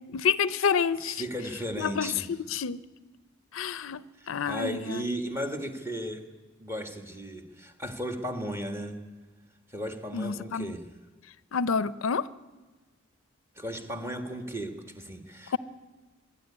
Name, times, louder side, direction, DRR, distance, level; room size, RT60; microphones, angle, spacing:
voice 1, 0.1-1.2 1.8-2.1 2.5-2.8 3.5-4.8 10.1-10.7 11.5-12.2, left 6 dB, 80° left, 0.5 m, -28 dB
voice 2, 1.0-2.3 4.2-6.3 6.6-9.0 9.7-10.9 13.5-15.6, equal, 15° right, 1.6 m, -35 dB
21.5 x 13.0 x 9.7 m
head